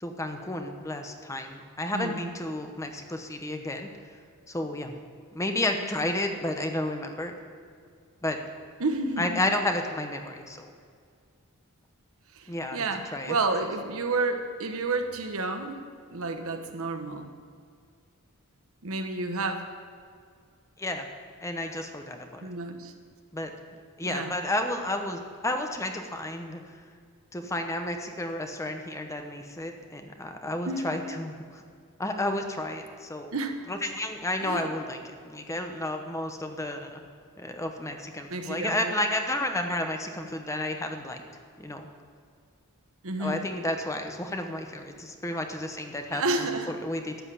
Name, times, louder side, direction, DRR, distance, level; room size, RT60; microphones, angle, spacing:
voice 1, 0.0-3.9 4.5-4.9 5.3-7.3 8.2-8.4 9.2-10.7 12.5-12.8 13.1-13.4 20.8-21.1 21.4-22.5 23.3-23.5 24.0-26.6 27.3-31.6 32.0-33.3 33.7-35.0 35.2-37.0 37.4-41.2 41.6-41.9 43.2-47.2, left 1 dB, 15° left, 5 dB, 0.9 m, -31 dB
voice 2, 1.9-2.3 8.8-9.4 12.3-15.8 16.1-17.3 18.8-19.6 22.4-22.9 24.0-24.3 30.7-31.2 33.3-33.6 34.4-34.7 38.3-38.9 43.0-43.4 46.1-46.7, right 3 dB, 65° right, 6 dB, 1.2 m, -30 dB
12.5 x 8.2 x 8.3 m, 2.1 s
head